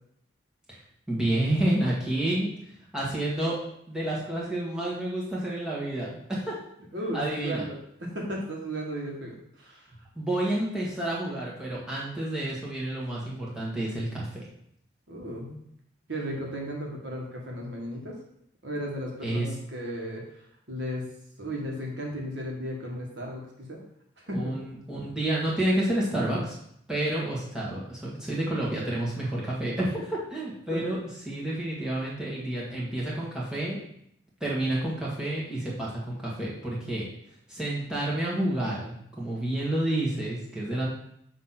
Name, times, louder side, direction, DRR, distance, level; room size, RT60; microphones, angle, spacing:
voice 1, 1.1-2.5 2.9-3.6 3.9-6.6 7.1-7.6 10.1-14.4 19.2-19.5 24.3-26.5 26.9-31.0 31.2-33.8 34.4-37.0 37.5-40.9, right 1 dB, 5° right, -7 dB, 1.6 m, -29 dB
voice 2, 6.9-9.8 15.1-15.6 16.1-18.2 18.6-20.3 20.7-21.1 21.4-23.8 24.2-24.6 30.7-30.8, equal, 60° right, -1 dB, 1.6 m, -35 dB
6.5 x 3.1 x 5.8 m, 0.72 s
head